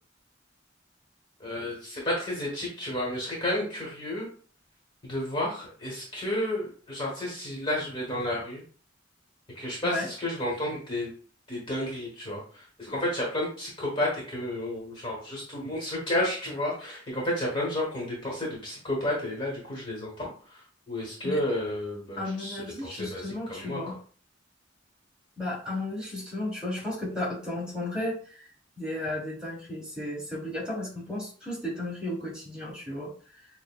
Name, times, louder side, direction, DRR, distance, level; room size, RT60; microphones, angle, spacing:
voice 1, 1.4-4.3 5.0-8.6 9.5-11.1 11.5-23.8, left 1 dB, 25° left, -2 dB, 1.2 m, -31 dB
voice 2, 22.2-23.9 25.4-28.5 28.8-33.5, left 1 dB, 5° right, -5 dB, 1.6 m, -34 dB
6.3 x 2.1 x 2.3 m, 0.43 s
head